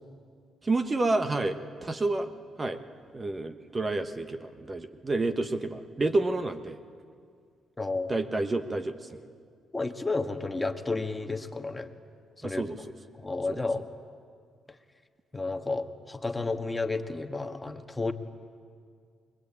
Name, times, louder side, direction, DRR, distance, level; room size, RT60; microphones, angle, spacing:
voice 1, 0.6-2.3 2.6-2.8 3.1-6.8 8.1-9.2 12.4-12.8 13.5-13.6, right 2 dB, 25° right, 9 dB, 1.3 m, -29 dB
voice 2, 7.8-8.1 9.7-11.9 12.4-12.6 13.2-13.9 15.3-18.1, left 3 dB, 15° left, 7 dB, 1.6 m, -31 dB
30.0 x 22.5 x 8.8 m, 2.1 s
cardioid pair, 90°, 0 cm